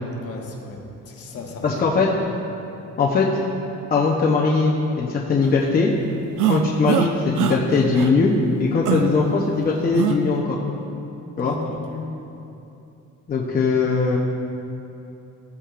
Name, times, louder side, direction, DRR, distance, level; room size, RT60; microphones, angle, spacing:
voice 1, 0.2-2.2 8.8-8.9 11.4-12.1, left 4 dB, 50° left, 1 dB, 1.3 m, -36 dB
voice 2, 1.6-2.1 3.0-3.3 3.9-5.9 6.4-10.6 11.4-11.6 13.3-14.2, left 4 dB, 30° left, -3 dB, 0.7 m, -20 dB
sound 1, 6.4-7.1 7.4-7.6 8.0-8.1 8.9-9.1 9.9-10.2, right 10 dB, 80° right, 0.6 m, -21 dB
15.5 x 8.4 x 2.5 m, 2.8 s
cardioid pair, 150°, 31 cm